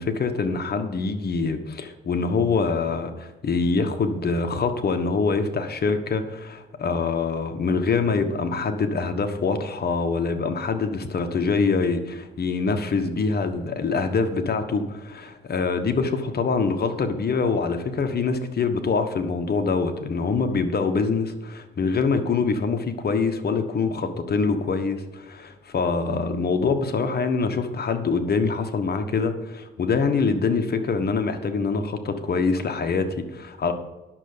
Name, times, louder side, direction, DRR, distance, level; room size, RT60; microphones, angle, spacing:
voice 1, 0.0-33.7, left 4 dB, 50° left, 7 dB, 1.3 m, -24 dB
10.5 x 6.7 x 6.7 m, 1.1 s
cardioid pair, 85°, 20 cm